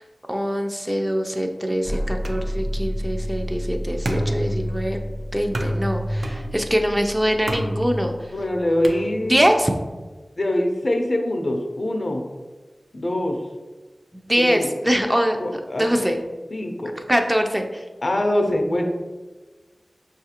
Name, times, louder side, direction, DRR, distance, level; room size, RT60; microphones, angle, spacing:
voice 1, 0.3-5.0 5.3-8.1 9.3-9.7 14.3-15.4 15.8-16.2 17.1-17.8, equal, 10° right, 4 dB, 0.3 m, -23 dB
sound 1, 1.8-8.8, equal, 55° right, 0.8 m, -31 dB
sound 2, 2.2-9.6, equal, 80° right, 0.4 m, -30 dB
voice 2, 8.3-9.4 10.4-12.2 12.9-13.4 14.4-14.7 15.4-16.1 16.5-16.9 18.0-18.9, left 1 dB, 60° left, 3 dB, 0.5 m, -23 dB
5.6 x 2.4 x 2.8 m, 1.3 s
wide cardioid pair, 75°, 0 cm